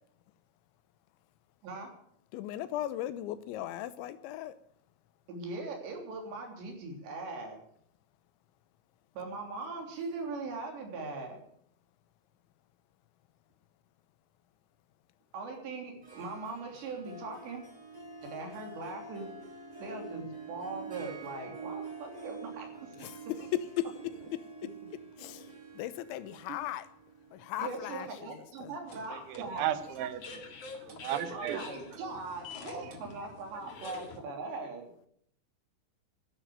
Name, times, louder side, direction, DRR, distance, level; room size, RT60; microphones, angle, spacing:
voice 1, 2.3-4.6 23.0-24.4 25.2-25.5 25.8-26.9 27.3-28.3 28.6-28.7, left 13 dB, 85° left, 3.2 m, -37 dB
voice 2, 5.3-7.6 9.2-11.4 15.3-17.6 18.2-19.3 19.8-23.1 23.4-23.5 27.6-29.8 31.3-34.9, right 3 dB, 70° right, 5.4 m, -40 dB
Harp, 16.0-29.6, right 3 dB, 10° right, 2.9 m, -47 dB
sound 1, 22.6-24.3 25.0-25.1 28.9-34.2, left 4 dB, 45° left, 2.3 m, -47 dB
Clock, 28.9-29.1 29.9-30.2 30.9-31.1 31.9-32.2 32.9-33.1 33.9-34.2, right 3 dB, 40° right, 2.1 m, -55 dB
voice 3, 29.1-30.5 30.8-31.6 33.5-33.6, right 11 dB, 90° right, 3.6 m, -35 dB
12.5 x 11.0 x 9.2 m
omnidirectional pair, 5.2 m